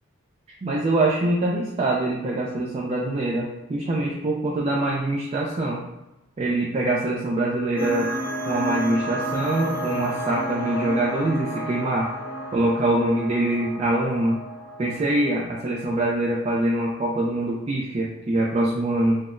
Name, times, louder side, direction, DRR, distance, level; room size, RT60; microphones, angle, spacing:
voice 1, 0.6-5.8 6.4-8.1 8.5-12.1 12.5-14.4 14.8-19.2, right 1 dB, 30° right, -3 dB, 0.3 m, -24 dB
sound 1, 7.8-16.0, right 1 dB, 5° right, 0.7 m, -31 dB
3.8 x 2.0 x 2.5 m, 0.96 s
head